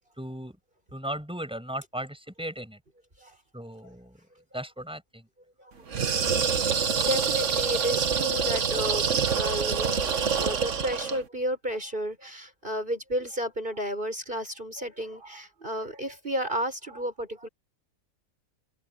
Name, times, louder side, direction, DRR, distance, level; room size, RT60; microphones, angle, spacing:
voice 1, 0.2-0.6 0.9-2.8 3.5-4.2 4.5-5.2, right 1 dB, 5° right, 7.6 m, -36 dB
sound 1, 5.9-11.2, right 6 dB, 60° right, 1.6 m, -26 dB
voice 2, 6.1-17.5, equal, 35° right, 7.1 m, -33 dB
open air
omnidirectional pair, 1.5 m